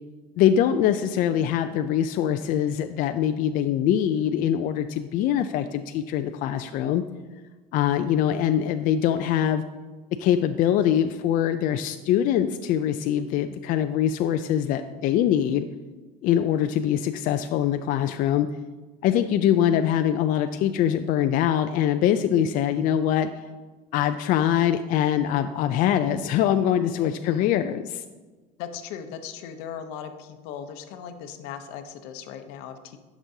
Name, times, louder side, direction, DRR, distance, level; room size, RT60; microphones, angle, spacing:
voice 1, 0.4-7.0 7.7-9.6 10.2-15.7 16.2-18.5 19.0-23.3 23.9-28.0, left 10 dB, 55° left, 8 dB, 0.4 m, -23 dB
voice 2, 26.9-27.5 28.6-33.0, left 8 dB, 85° left, 8 dB, 0.8 m, -38 dB
11.5 x 6.1 x 2.7 m, 1.3 s
cardioid pair, 130°, 16 cm